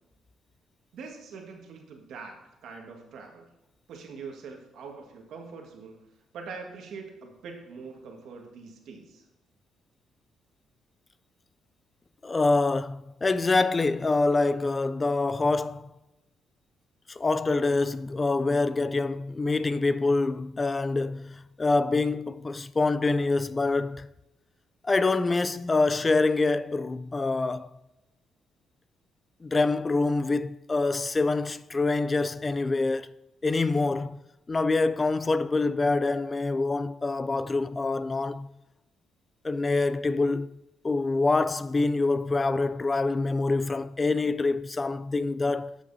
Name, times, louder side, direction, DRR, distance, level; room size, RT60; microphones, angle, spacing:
voice 1, 0.9-2.4 2.6-3.5 3.9-6.0 6.3-9.2, right 4 dB, 75° right, 1.6 m, -43 dB
voice 2, 12.2-15.9 17.1-24.1 24.8-27.7 29.4-33.1 33.4-34.2 34.5-38.5 39.4-40.5 40.8-45.8, left 3 dB, 25° left, 0.3 m, -26 dB
13.0 x 6.1 x 2.7 m
cardioid pair, 90°, 0 cm